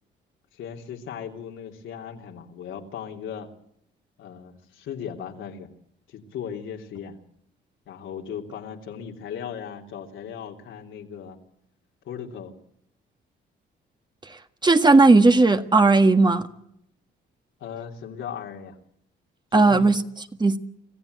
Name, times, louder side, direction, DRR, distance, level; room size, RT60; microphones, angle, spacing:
voice 1, 0.5-3.5 4.2-5.7 6.1-7.2 7.9-11.4 12.0-12.5 17.6-18.8 19.5-19.9, left 8 dB, 80° left, 2 dB, 3.2 m, -37 dB
voice 2, 14.6-16.5 19.5-20.0 20.4-20.6, right 3 dB, 20° right, 8 dB, 1.6 m, -16 dB
26.0 x 15.0 x 8.0 m, 0.76 s
cardioid pair, 90°, 20 cm